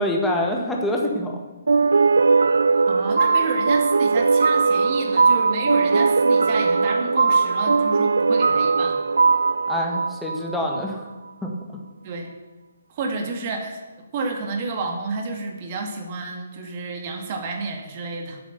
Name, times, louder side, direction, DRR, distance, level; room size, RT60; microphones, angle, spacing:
voice 1, 0.0-1.3 9.7-11.0 11.4-11.5, left 1 dB, 5° left, 0 dB, 1.8 m, -25 dB
sound 1, 1.7-10.9, right 4 dB, 65° right, 0.4 m, -19 dB
voice 2, 2.9-9.0 12.0-12.3 12.9-13.8 14.1-18.4, right 3 dB, 35° right, 3 dB, 2.2 m, -30 dB
11.0 x 8.3 x 7.0 m, 1.1 s
figure-of-eight pair, 135°, 0 cm